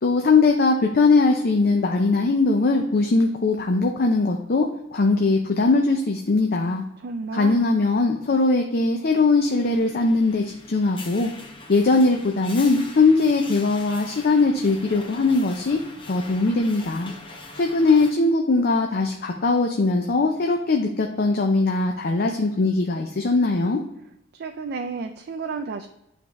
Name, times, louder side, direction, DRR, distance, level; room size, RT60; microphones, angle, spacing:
voice 1, 0.0-4.7 4.9-6.8 7.3-11.3 11.7-15.8 16.1-17.1 17.5-23.8, left 3 dB, 50° left, 3 dB, 0.5 m, -20 dB
voice 2, 7.0-7.8 24.3-25.9, right 4 dB, 55° right, 7 dB, 0.4 m, -32 dB
sound 1, 9.5-18.1, left 2 dB, 25° left, 0.8 m, -42 dB
9.3 x 3.5 x 3.1 m, 0.86 s
head